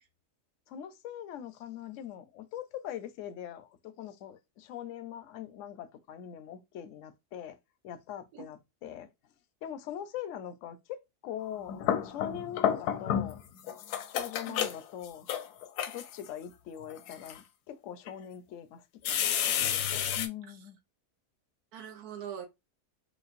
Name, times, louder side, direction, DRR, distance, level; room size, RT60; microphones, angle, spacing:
voice 1, 0.7-7.6 7.8-9.1 9.6-11.0 11.2-13.4 14.1-15.5 15.9-19.8 20.2-20.8, left 10 dB, 65° left, 0.8 m, -42 dB
sound 1, 11.5-13.4 13.7-16.3 16.9-17.4 18.1-18.2 19.0-20.3, left 9 dB, 85° left, 1.1 m, -31 dB
voice 2, 21.7-22.5, right 9 dB, 75° right, 1.2 m, -42 dB
5.0 x 2.3 x 2.5 m
omnidirectional pair, 1.7 m